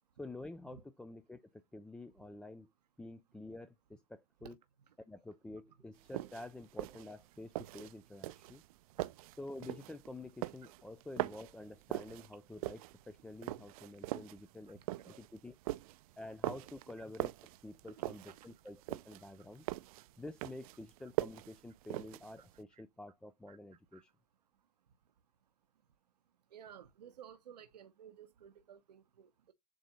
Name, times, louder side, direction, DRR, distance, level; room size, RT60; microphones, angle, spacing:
voice 1, 0.2-2.7 3.0-4.6 5.0-8.6 9.4-14.8 15.1-15.6 16.2-17.3 17.6-19.6 20.2-24.1, left 2 dB, 5° left, 0.3 m, -49 dB
sound 1, 6.0-22.6, right 18 dB, 60° right, 0.5 m, -42 dB
voice 2, 17.9-18.5 22.7-22.8 23.5-23.6 23.9-24.0 26.5-29.5, right 9 dB, 90° right, 0.9 m, -55 dB
7.6 x 2.7 x 5.0 m
hypercardioid pair, 120°, 20 cm